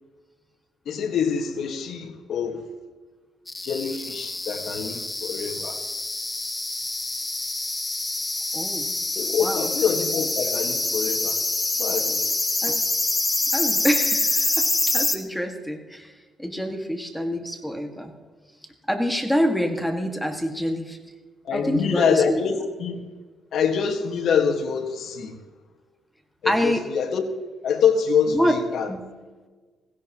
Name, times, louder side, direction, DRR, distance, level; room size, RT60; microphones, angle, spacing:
voice 1, 0.8-2.6 3.6-5.8 9.1-11.4 11.8-12.3 21.4-23.0 23.5-25.4 26.4-27.2 27.6-28.9, left 6 dB, 70° left, 1.6 m, -25 dB
sound 1, 3.5-15.2, left 2 dB, 20° left, 1.2 m, -26 dB
voice 2, 8.5-9.0 9.4-9.7 12.6-12.8 13.5-16.1 16.4-18.1 18.9-21.0 21.5-22.4 26.4-26.9 28.3-28.6 28.9-29.0, equal, 5° left, 1.9 m, -26 dB
16.5 x 16.5 x 3.0 m
cardioid pair, 90°, 0 cm